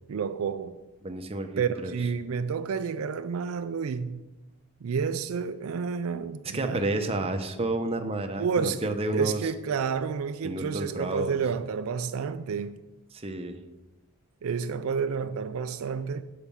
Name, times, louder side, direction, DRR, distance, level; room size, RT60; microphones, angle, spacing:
voice 1, 0.1-0.8 1.6-4.3 4.8-6.8 8.4-12.8 14.4-16.2, right 6 dB, 70° right, 0.4 m, -30 dB
voice 2, 1.0-1.9 6.5-9.5 10.4-11.4 13.1-13.6, right 2 dB, 25° right, 0.7 m, -30 dB
8.9 x 4.7 x 7.0 m
head